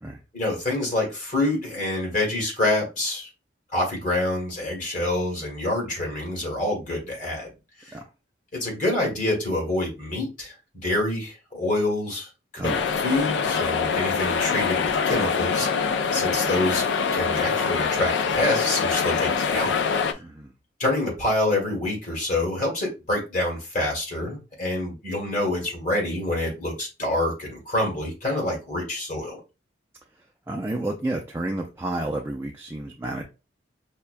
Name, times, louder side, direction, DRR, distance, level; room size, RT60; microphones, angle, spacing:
voice 1, 0.3-3.3 3.7-7.5 7.8-8.0 8.5-12.7 13.0-15.7 16.1-16.8 17.1-20.2 20.8-29.4, left 1 dB, 40° left, -1 dB, 1.6 m, -27 dB
sound 1, 12.6-20.1, left 6 dB, 65° left, 0.3 m, -24 dB
voice 2, 20.1-20.5 30.5-33.2, right 1 dB, 15° right, 1 dB, 0.4 m, -30 dB
5.6 x 2.2 x 2.5 m, 0.28 s
head